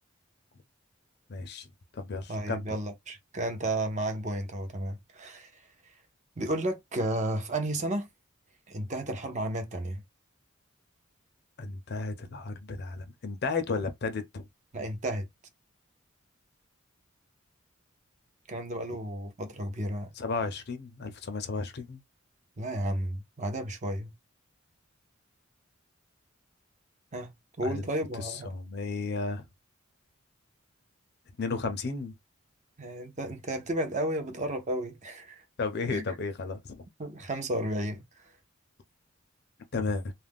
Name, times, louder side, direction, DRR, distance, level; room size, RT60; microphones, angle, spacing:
voice 1, 1.3-2.8 11.6-14.5 20.2-22.0 27.6-27.9 28.2-29.4 31.4-32.1 35.6-36.8 39.7-40.1, left 4 dB, 55° left, 0.5 m, -33 dB
voice 2, 2.3-5.5 6.4-8.1 8.7-10.0 14.7-15.3 18.5-20.1 22.6-24.1 27.1-27.3 27.6-28.5 32.8-35.4 35.9-36.0 37.0-38.0, right 1 dB, 35° right, 0.7 m, -32 dB
2.4 x 2.1 x 3.4 m
head